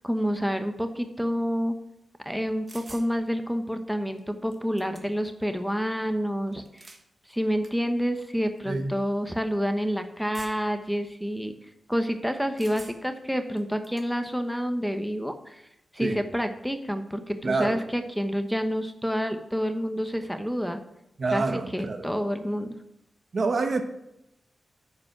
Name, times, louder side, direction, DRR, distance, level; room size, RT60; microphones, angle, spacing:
voice 1, 0.0-1.8 2.2-6.6 7.3-11.5 11.9-15.6 15.9-20.8 21.3-21.4 21.7-22.7, equal, ahead, 7 dB, 1.0 m, -28 dB
sound 1, 2.7-3.1 4.2-4.3 4.5-5.3 6.5-7.1 7.6-7.7 8.6-8.7 10.3-10.8 12.6-13.2 13.6-14.1, right 2 dB, 40° right, 1.3 m, -47 dB
voice 2, 17.4-17.8 21.2-22.1 23.3-23.8, right 3 dB, 60° right, 6 dB, 1.1 m, -27 dB
9.5 x 5.2 x 5.9 m, 0.84 s
cardioid pair, 55°, 0 cm